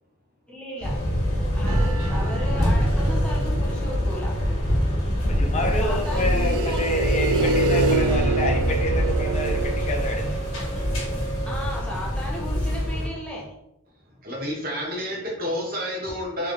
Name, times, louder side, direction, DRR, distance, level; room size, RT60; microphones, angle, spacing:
voice 1, 0.5-1.0 1.5-4.3 5.8-7.6 11.4-13.5, left 1 dB, 5° left, -4 dB, 0.9 m, -35 dB
sound 1, 0.8-13.1, equal, 65° left, 1.4 m, -24 dB
sound 2, 1.7-2.7 6.0-9.7, right 3 dB, 85° right, 0.3 m, -25 dB
voice 2, 5.3-10.4, left 2 dB, 30° left, 2 dB, 0.4 m, -28 dB
voice 3, 14.2-16.5, equal, 45° right, -2 dB, 1.1 m, -29 dB
3.5 x 3.3 x 3.2 m, 0.85 s
head